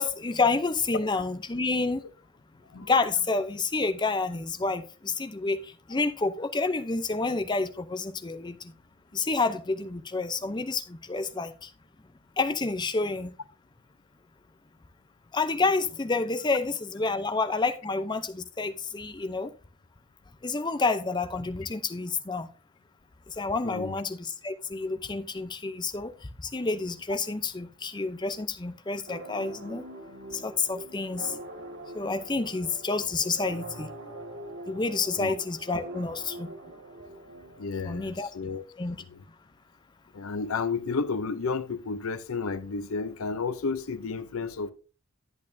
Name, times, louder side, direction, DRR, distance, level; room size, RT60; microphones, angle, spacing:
voice 1, 0.0-2.0 2.8-8.7 9.1-11.7 12.4-13.3 15.3-19.5 20.4-22.5 23.3-26.1 26.4-29.8 30.3-31.4 31.9-33.9 34.7-36.5 37.8-38.3 38.8-39.0, left 3 dB, 20° left, 0.6 m, -29 dB
voice 2, 23.6-24.0 35.2-35.3 37.6-38.7 39.1-39.2 40.1-44.7, left 4 dB, 70° left, 0.6 m, -32 dB
sound 1, 29.1-38.5, right 1 dB, 55° right, 1.9 m, -43 dB
10.5 x 8.6 x 2.6 m
head